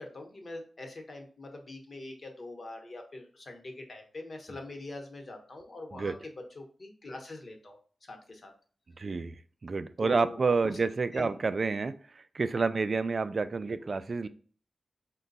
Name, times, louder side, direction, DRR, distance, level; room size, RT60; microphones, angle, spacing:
voice 1, 0.0-8.5 10.0-10.8 11.1-11.3 13.6-13.9, left 2 dB, 45° left, 3 dB, 1.0 m, -44 dB
voice 2, 9.0-9.4 9.6-14.3, right 4 dB, 50° right, 12 dB, 0.3 m, -29 dB
4.9 x 2.2 x 3.9 m, 0.44 s
wide cardioid pair, 105°, 0 cm